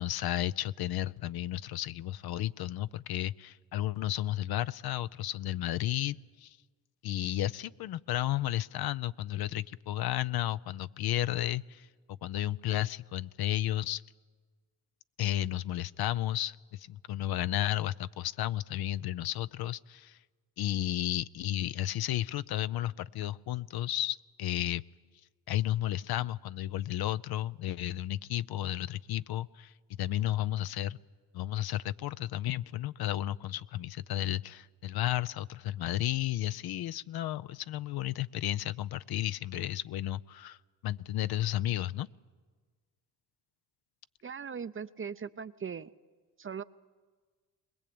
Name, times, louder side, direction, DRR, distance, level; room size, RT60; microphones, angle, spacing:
voice 1, 0.0-6.6 7.0-14.0 15.2-20.2 20.6-24.8 25.5-29.7 30.0-31.0 31.3-40.6 40.8-42.1, left 13 dB, 60° left, 16 dB, 0.6 m, -33 dB
voice 2, 44.2-45.9 46.4-46.6, right 6 dB, 30° right, 13 dB, 0.6 m, -39 dB
21.5 x 20.5 x 8.7 m, 1.5 s
supercardioid pair, 65°, 43 cm